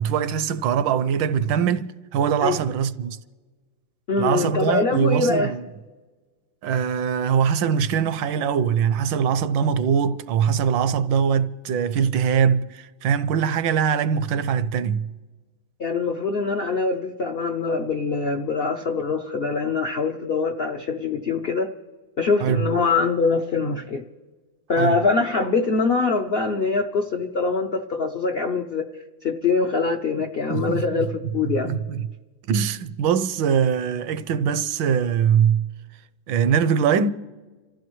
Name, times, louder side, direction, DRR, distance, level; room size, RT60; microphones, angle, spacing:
voice 1, 0.0-3.2 4.2-5.6 6.6-15.1 22.4-22.6 24.8-25.0 30.5-31.1 31.4-32.1 32.5-35.7 36.3-37.1, right 7 dB, 80° right, 1.3 m, -22 dB
voice 2, 4.1-5.5 15.8-21.7 22.2-24.0 24.7-28.8 29.2-31.1 31.3-31.8, left 4 dB, 75° left, 0.5 m, -23 dB
27.0 x 14.5 x 3.1 m
omnidirectional pair, 2.1 m